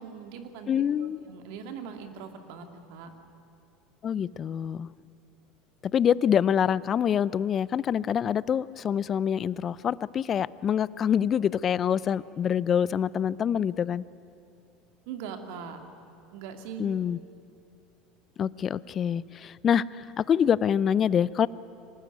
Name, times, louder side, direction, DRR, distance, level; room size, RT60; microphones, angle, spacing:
voice 1, 0.0-0.7 1.0-3.1 15.1-15.8 16.3-16.8, right 7 dB, 70° right, 6 dB, 2.5 m, -41 dB
voice 2, 0.7-1.2 4.0-4.9 5.8-14.0 16.8-17.2 18.4-21.5, left 8 dB, 40° left, 20 dB, 0.6 m, -26 dB
25.0 x 18.5 x 9.3 m, 2.7 s
hypercardioid pair, 80°, 0 cm